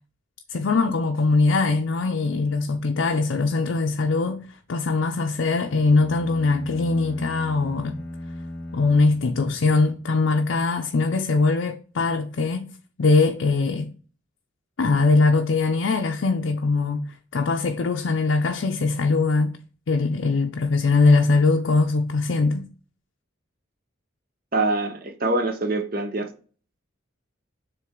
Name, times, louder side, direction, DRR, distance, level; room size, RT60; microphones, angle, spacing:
voice 1, 0.5-4.4 4.7-8.0 8.7-12.7 13.0-13.9 14.8-17.1 17.3-19.6 19.9-22.7, left 3 dB, 65° left, 0.5 m, -21 dB
sound 1, 5.6-9.9, left 1 dB, 45° left, 0.8 m, -37 dB
voice 2, 24.5-26.3, right 2 dB, 45° right, 0.9 m, -24 dB
7.4 x 3.4 x 3.7 m
head